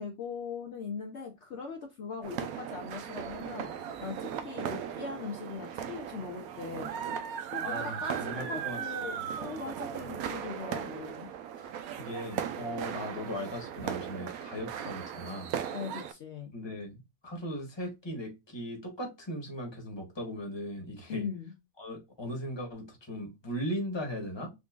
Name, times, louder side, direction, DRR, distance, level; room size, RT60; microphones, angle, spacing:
voice 1, 0.0-3.7 4.0-6.9 7.4-11.3 15.7-16.5 21.1-21.5, left 5 dB, 55° left, 1.0 m, -40 dB
sound 1, 2.2-16.1, right 9 dB, 75° right, 1.0 m, -37 dB
voice 2, 7.6-8.8 11.6-11.7 12.0-15.5 16.5-21.3 21.8-24.5, equal, 20° left, 1.2 m, -38 dB
3.8 x 3.7 x 2.3 m
omnidirectional pair, 1.6 m